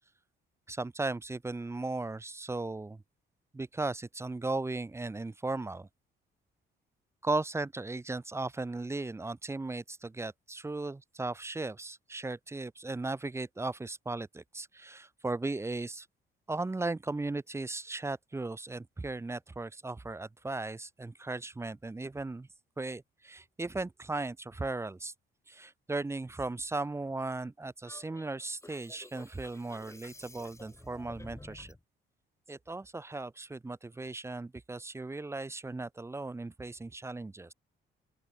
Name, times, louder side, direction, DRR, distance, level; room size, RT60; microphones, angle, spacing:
voice 1, 0.7-3.0 3.5-5.9 7.2-16.1 16.5-22.5 22.8-25.1 25.5-31.7 32.5-37.5, right 2 dB, 15° right, 0.6 m, -37 dB
sound 1, 27.8-31.8, left 2 dB, 15° left, 8.0 m, -51 dB
open air
cardioid pair, 90°, 20 cm